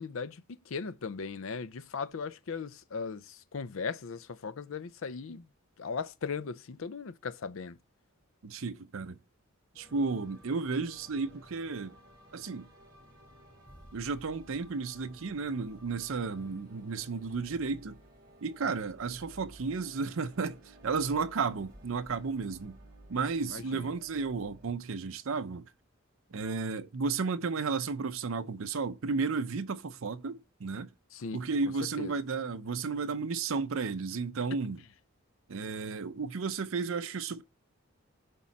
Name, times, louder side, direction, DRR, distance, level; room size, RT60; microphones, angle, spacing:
voice 1, 0.0-5.5 5.8-7.8 23.5-23.9 31.1-31.4 32.0-32.1, left 5 dB, 70° left, 0.5 m, -38 dB
voice 2, 8.4-9.2 9.8-11.9 12.3-12.7 13.9-18.0 18.4-22.8 23.1-25.7 26.3-30.9 31.3-34.8 35.5-37.4, right 4 dB, 70° right, 0.6 m, -33 dB
sound 1, 9.8-24.7, right 1 dB, 15° right, 3.9 m, -56 dB
8.4 x 3.7 x 4.1 m
head